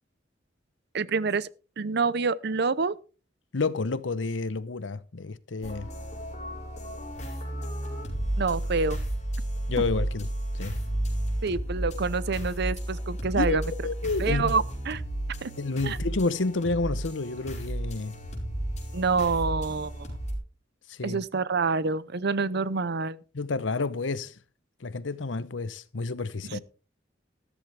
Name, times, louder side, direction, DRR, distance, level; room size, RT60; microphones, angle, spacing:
voice 1, 0.9-1.5 1.8-2.9 8.4-9.0 11.4-13.6 14.2-15.0 15.4-15.5 15.8-16.0 18.9-20.1 21.0-23.2 26.5-26.6, right 4 dB, 60° right, 0.7 m, -27 dB
voice 2, 3.5-5.9 9.7-10.3 10.5-10.8 13.4-14.6 15.6-18.2 20.9-21.2 23.3-24.3 24.8-26.6, left 3 dB, 85° left, 0.8 m, -30 dB
sound 1, 5.6-20.4, right 1 dB, 40° left, 5.1 m, -32 dB
14.0 x 13.5 x 3.4 m
head